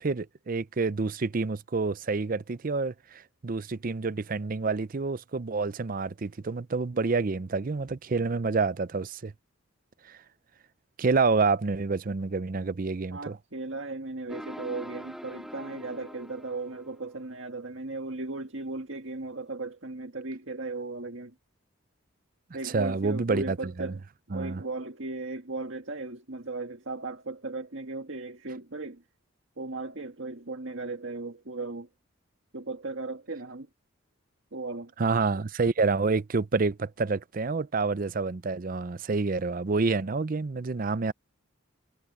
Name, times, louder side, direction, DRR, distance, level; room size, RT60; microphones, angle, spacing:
voice 1, 0.0-9.3 10.1-10.2 11.0-13.4 22.6-23.9 24.3-24.6 35.0-41.1, right 4 dB, 45° right, 0.5 m, -28 dB
voice 2, 13.1-21.3 22.5-24.0 24.3-29.0 29.6-31.9 32.5-33.7 34.5-34.9, right 3 dB, 65° right, 1.8 m, -36 dB
sound 1, 14.3-17.3, equal, ahead, 1.7 m, -43 dB
head